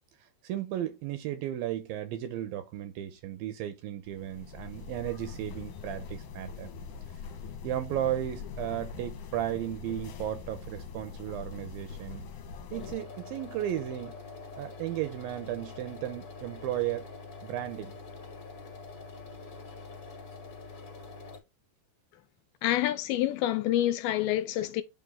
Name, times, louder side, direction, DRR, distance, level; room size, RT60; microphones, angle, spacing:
voice 1, 0.2-6.7 7.6-12.3 12.7-14.2 14.6-17.1 17.4-18.0, right 12 dB, 80° right, 2.3 m, -35 dB
sound 1, 4.0-12.9, left 6 dB, 65° left, 2.4 m, -43 dB
sound 2, 12.7-21.4, left 4 dB, 25° left, 1.9 m, -45 dB
voice 2, 22.6-24.8, left 13 dB, 80° left, 2.4 m, -27 dB
8.7 x 3.4 x 3.6 m
omnidirectional pair, 4.6 m